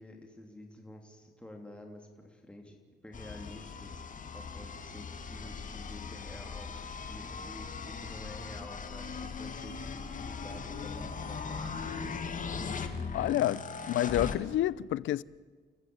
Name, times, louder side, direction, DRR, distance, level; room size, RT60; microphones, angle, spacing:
voice 1, 0.0-2.8 3.0-12.3 13.4-13.6, left 1 dB, 5° left, 3.1 m, -50 dB
sound 1, 3.1-14.4, left 5 dB, 40° left, 2.0 m, -39 dB
voice 2, 13.1-13.6 13.9-15.2, left 13 dB, 75° left, 0.6 m, -28 dB
30.0 x 14.5 x 8.7 m
cardioid pair, 90°, 20 cm